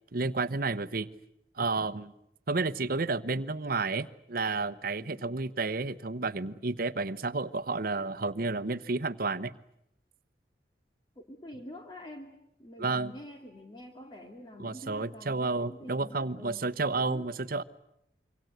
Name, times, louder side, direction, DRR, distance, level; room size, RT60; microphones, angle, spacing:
voice 1, 0.1-1.1 1.6-2.1 2.5-9.5 12.8-13.1 14.6-17.6, right 3 dB, 55° right, 15 dB, 1.0 m, -31 dB
voice 2, 5.0-5.4 11.2-17.3, left 1 dB, 25° left, 3 dB, 2.4 m, -47 dB
26.5 x 25.0 x 8.0 m, 0.79 s
head